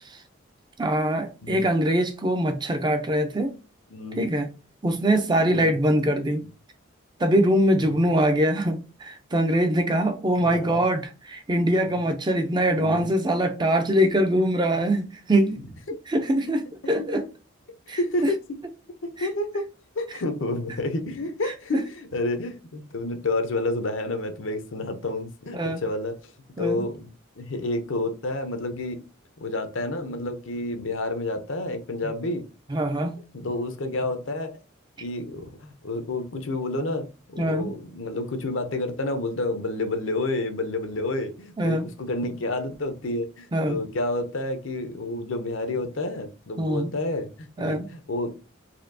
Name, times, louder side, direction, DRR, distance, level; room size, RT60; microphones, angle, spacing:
voice 1, 0.8-3.5 4.2-4.5 4.8-6.4 7.2-15.6 16.1-17.2 17.9-18.3 19.2-19.3 21.7-21.8 25.5-25.8 26.6-26.8 32.7-33.1 37.4-37.7 41.6-41.9 43.5-43.8 46.6-46.9 47.6-47.9, right 1 dB, 20° right, 0.5 m, -23 dB
voice 2, 3.9-4.2 5.5-5.8 6.4-6.5 7.7-8.0 10.4-10.8 11.8-12.0 12.7-13.1 17.0-17.2 17.9-18.4 19.0-19.7 20.0-26.1 26.6-27.1 27.4-29.0 29.4-32.4 33.3-34.6 35.0-48.3, left 2 dB, 65° left, 0.7 m, -29 dB
4.2 x 2.7 x 2.6 m
head